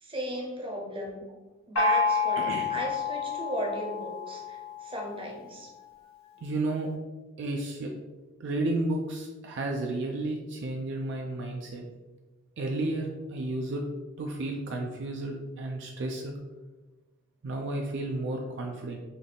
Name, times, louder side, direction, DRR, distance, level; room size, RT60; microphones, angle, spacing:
voice 1, 0.0-1.2 1.7-5.7, equal, 25° right, -1 dB, 0.7 m, -36 dB
Gong, 1.8-5.3, left 4 dB, 90° left, 0.9 m, -29 dB
voice 2, 2.4-2.7 6.4-6.9 7.4-7.9 8.4-11.8 12.6-13.8 14.2-16.4 17.4-19.0, right 2 dB, 60° right, 2 dB, 0.4 m, -32 dB
3.4 x 2.3 x 3.9 m, 1.2 s
head